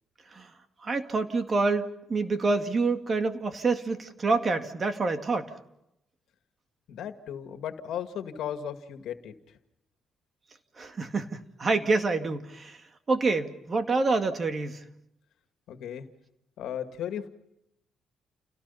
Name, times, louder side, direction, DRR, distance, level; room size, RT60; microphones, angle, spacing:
voice 1, 0.8-5.5 10.8-12.8 13.1-14.8, right 3 dB, 35° right, 7 dB, 2.1 m, -27 dB
voice 2, 6.9-9.3 15.7-16.1 16.6-17.3, left 9 dB, 80° left, 7 dB, 2.0 m, -35 dB
29.5 x 17.5 x 5.7 m, 0.82 s
cardioid pair, 90°, 0 cm